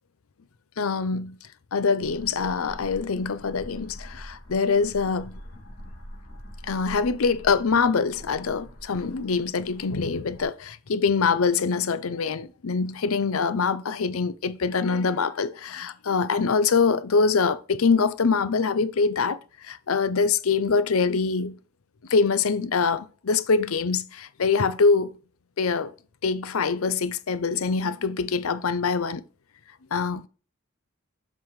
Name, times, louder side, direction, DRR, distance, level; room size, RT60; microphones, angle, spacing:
voice 1, 0.8-1.4 1.7-5.4 6.7-19.4 19.6-21.6 22.1-25.1 25.6-25.9 26.2-29.2 29.9-30.3, left 5 dB, 80° left, 0.6 m, -24 dB
sound 1, 2.0-10.5, equal, 50° left, 2.7 m, -44 dB
7.5 x 5.6 x 3.2 m
head